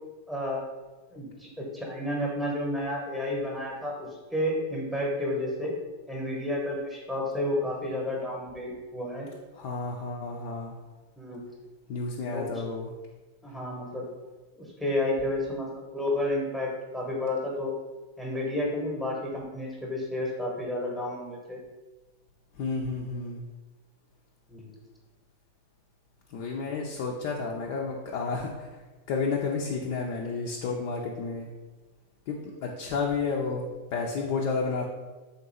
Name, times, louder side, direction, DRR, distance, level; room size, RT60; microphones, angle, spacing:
voice 1, 0.3-0.7 1.1-5.7 6.1-9.3 11.2-11.5 12.3-12.5 13.4-14.0 14.5-17.7 18.2-21.6 24.5-24.7, left 1 dB, ahead, -3 dB, 0.9 m, -31 dB
voice 2, 9.5-10.7 11.9-12.9 22.5-23.4 26.3-31.5 32.3-34.8, left 4 dB, 45° left, -1 dB, 0.4 m, -31 dB
3.6 x 2.7 x 4.1 m, 1.2 s
figure-of-eight pair, 90°, 0 cm